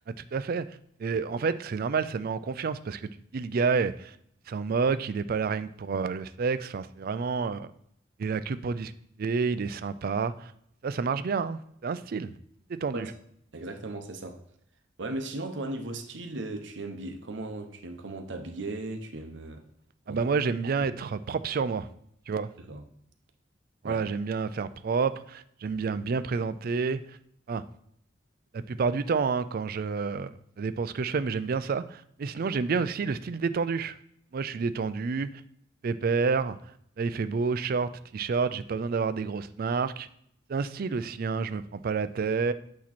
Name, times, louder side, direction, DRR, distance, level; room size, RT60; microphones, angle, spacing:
voice 1, 0.1-3.0 3.3-4.1 4.5-7.7 8.2-8.9 9.2-10.5 10.8-12.3 12.7-13.1 20.1-21.9 22.3-22.5 23.8-27.2 27.5-27.6 28.5-33.9 34.3-35.3 35.8-36.6 37.0-40.1 40.5-42.5, right 5 dB, 50° right, 13 dB, 0.4 m, -29 dB
voice 2, 13.5-14.4 15.0-19.6 20.1-20.2 22.6-22.8 23.8-24.0, right 2 dB, 70° right, 6 dB, 0.8 m, -37 dB
8.4 x 3.0 x 4.2 m, 0.71 s
head